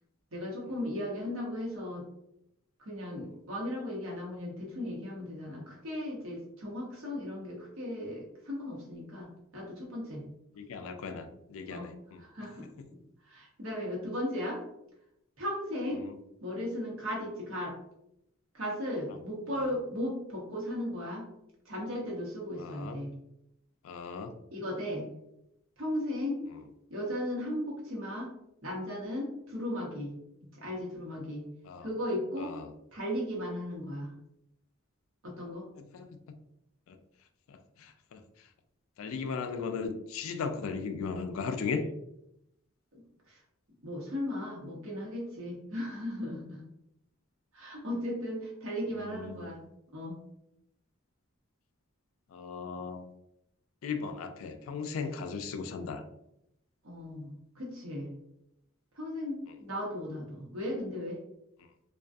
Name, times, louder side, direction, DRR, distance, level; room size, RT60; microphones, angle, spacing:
voice 1, 0.3-2.1 2.8-10.2 11.7-11.9 12.2-13.0 13.3-14.6 15.4-16.0 16.4-17.8 18.5-21.3 21.6-23.1 24.5-25.0 25.8-26.4 26.9-28.3 28.6-30.1 30.6-31.4 31.8-32.5 32.9-34.1 35.2-35.7 42.9-43.0 43.3-43.4 43.8-46.6 47.5-49.6 49.9-50.2 56.8-58.1 59.0-61.2, left 1 dB, 75° right, -3 dB, 0.9 m, -36 dB
voice 2, 10.5-12.3 12.8-12.9 16.0-16.1 19.1-19.2 19.5-19.7 22.6-23.0 23.8-24.3 31.7-31.9 32.4-32.7 35.8-36.2 36.9-37.0 37.5-38.2 39.0-41.9 48.9-49.6 52.3-53.1 53.8-56.0, left 5 dB, 75° left, 8 dB, 0.3 m, -37 dB
2.5 x 2.3 x 2.3 m, 0.82 s
head